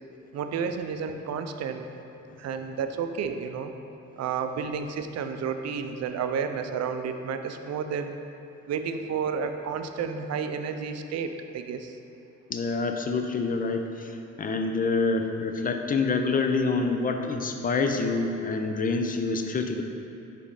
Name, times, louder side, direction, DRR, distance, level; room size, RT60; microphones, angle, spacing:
voice 1, 0.3-1.9 2.4-3.7 4.2-8.2 8.7-12.0, right 6 dB, 60° right, 7 dB, 0.5 m, -31 dB
voice 2, 12.5-19.8, left 4 dB, 30° left, 5 dB, 0.5 m, -27 dB
5.1 x 4.2 x 5.2 m, 2.6 s
cardioid pair, 90°, 30 cm